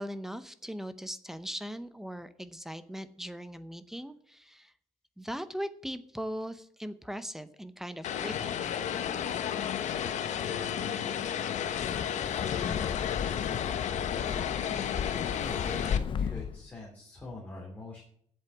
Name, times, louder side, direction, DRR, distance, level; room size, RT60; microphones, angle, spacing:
voice 1, 0.0-4.7 5.2-8.6, equal, 5° right, 12 dB, 0.7 m, -39 dB
Vehicle, 8.0-16.0, left 9 dB, 75° left, 1.0 m, -32 dB
Wind, 11.6-16.7, left 7 dB, 45° left, 0.5 m, -35 dB
voice 2, 14.1-14.6 15.4-18.0, left 2 dB, 15° left, -3 dB, 2.7 m, -44 dB
8.0 x 7.8 x 8.6 m, 0.65 s
cardioid pair, 165°, 12 cm